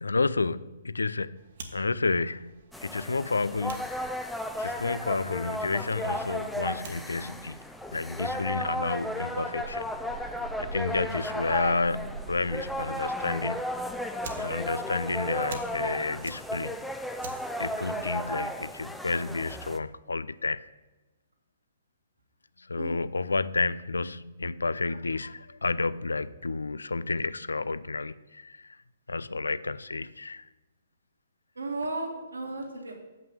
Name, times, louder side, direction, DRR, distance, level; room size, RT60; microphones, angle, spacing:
voice 1, 0.0-1.4 1.7-2.5 2.8-4.3 4.6-7.6 7.9-9.9 10.3-13.6 14.4-16.7 17.6-20.6 22.7-28.7 29.1-30.4, left 3 dB, 85° left, 17 dB, 0.3 m, -30 dB
Fire, 1.4-18.8, right 4 dB, 60° right, 1.2 m, -48 dB
sound 1, 2.7-19.8, left 1 dB, ahead, 0.5 m, -34 dB
voice 2, 31.6-32.9, right 2 dB, 85° right, 0 dB, 2.2 m, -34 dB
7.4 x 5.9 x 7.1 m, 1.1 s
hypercardioid pair, 130°, 0 cm